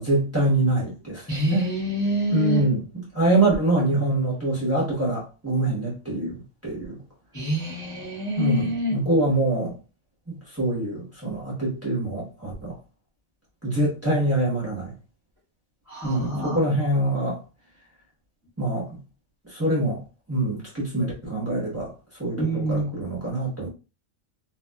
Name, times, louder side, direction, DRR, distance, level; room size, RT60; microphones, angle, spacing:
voice 1, 0.0-1.7 2.3-2.8 3.1-7.0 8.4-9.8 10.3-12.8 13.6-14.9 16.0-17.4 18.6-18.9 19.4-20.0 20.3-21.9 22.2-23.7, right 2 dB, 10° right, 1.0 m, -25 dB
voice 2, 1.3-2.6 7.3-9.0 15.9-16.6 22.4-22.9, equal, 15° left, 0.7 m, -26 dB
2.6 x 2.5 x 2.2 m
omnidirectional pair, 1.4 m